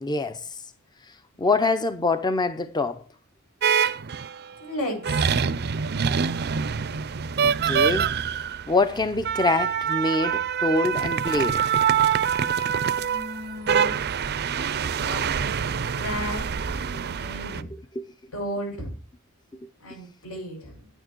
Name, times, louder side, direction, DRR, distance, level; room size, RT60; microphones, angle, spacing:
voice 1, 0.0-0.4 1.4-3.0 7.4-8.1 8.7-11.6 18.0-18.1, left 3 dB, 20° left, 0.6 m, -24 dB
sound 1, 3.6-4.4 5.0-17.6, right 7 dB, 50° right, 0.5 m, -25 dB
voice 2, 4.6-5.5 12.9-14.1 14.9-17.6 18.3-18.9 19.8-20.9, equal, 80° left, 6.8 m, -35 dB
9.9 x 9.1 x 4.5 m
head